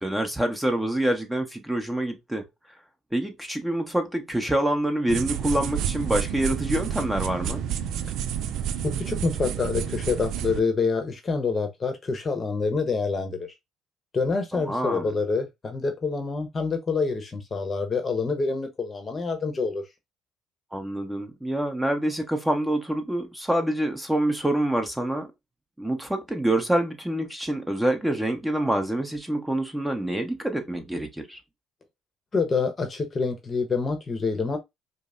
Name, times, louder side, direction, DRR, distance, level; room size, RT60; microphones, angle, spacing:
voice 1, 0.0-2.4 3.1-7.6 14.5-15.1 20.7-25.3 25.8-31.4, right 1 dB, 5° right, 1.0 m, -26 dB
sound 1, 5.1-10.6, right 9 dB, 65° right, 0.3 m, -30 dB
voice 2, 8.8-13.4 14.1-19.8 32.3-34.6, left 4 dB, 35° left, 0.9 m, -27 dB
5.1 x 2.1 x 2.5 m
hypercardioid pair, 65°, 0 cm